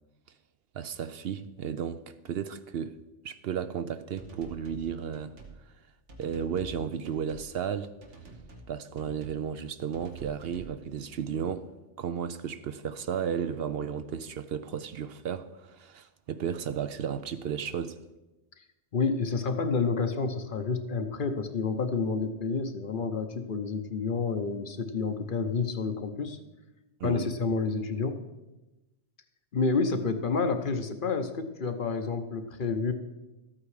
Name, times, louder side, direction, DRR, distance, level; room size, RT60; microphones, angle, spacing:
voice 1, 0.7-3.0 3.2-5.4 6.2-7.9 8.7-11.7 12.0-18.0 27.0-27.3, right 8 dB, 65° right, 0.7 m, -34 dB
sound 1, 4.2-4.9 5.1-5.6 6.1-6.8 7.0-7.5 8.0-8.7 9.0-9.4 9.9-10.8, right 3 dB, 90° right, 1.8 m, -48 dB
voice 2, 18.9-26.4 27.0-28.2 29.5-32.9, left 4 dB, 50° left, 0.9 m, -29 dB
13.0 x 8.6 x 4.9 m
omnidirectional pair, 1.2 m